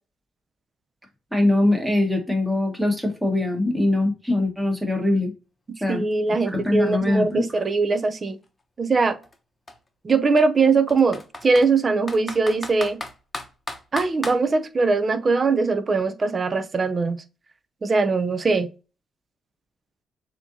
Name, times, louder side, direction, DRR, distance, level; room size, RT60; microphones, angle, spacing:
voice 1, 1.3-5.3 5.8-6.0 6.4-7.5, left 2 dB, 5° right, 1.5 m, -22 dB
voice 2, 5.9-8.4 8.8-9.2 10.0-13.0 13.9-17.2 17.8-18.7, right 4 dB, 35° right, 0.6 m, -21 dB
Computer keyboard, 6.1-6.2 6.5-8.4 9.2-9.4 9.7-9.8 10.4-11.7 12.1-14.4, left 2 dB, 20° left, 1.0 m, -35 dB
6.8 x 2.9 x 2.7 m
cardioid pair, 90°, 0 cm